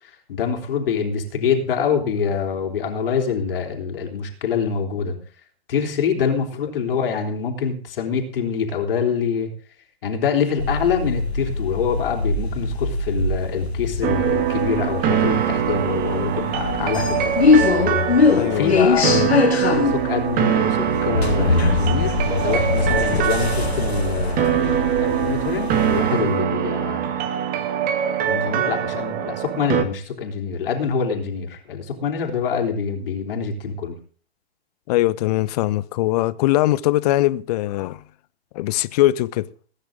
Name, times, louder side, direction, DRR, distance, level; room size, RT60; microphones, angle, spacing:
voice 1, 0.0-5.2 5.7-9.5 10.0-27.2 28.2-34.0, left 6 dB, 60° left, 3.7 m, -25 dB
sound 1, 10.6-26.2, left 4 dB, 75° left, 2.6 m, -22 dB
sound 2, 14.0-29.8, right 10 dB, 25° right, 1.8 m, -23 dB
voice 2, 18.3-19.3 34.9-38.0 38.5-39.5, left 16 dB, 40° left, 0.9 m, -21 dB
20.0 x 10.0 x 3.7 m
figure-of-eight pair, 120°, 32 cm